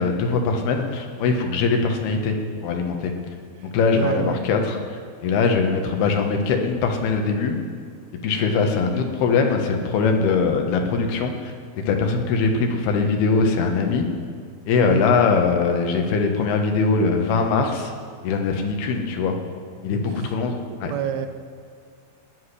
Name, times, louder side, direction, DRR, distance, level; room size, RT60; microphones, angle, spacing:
voice 1, 0.0-2.4 2.6-3.1 3.6-7.6 8.2-14.1 14.7-17.9 18.2-19.4 19.8-20.9, left 4 dB, 75° left, 4 dB, 3.3 m, -22 dB
voice 2, 4.0-4.4 14.9-15.1 20.6-21.3, right 10 dB, 80° right, 9 dB, 2.5 m, -27 dB
17.5 x 6.5 x 9.9 m, 2.3 s
omnidirectional pair, 4.6 m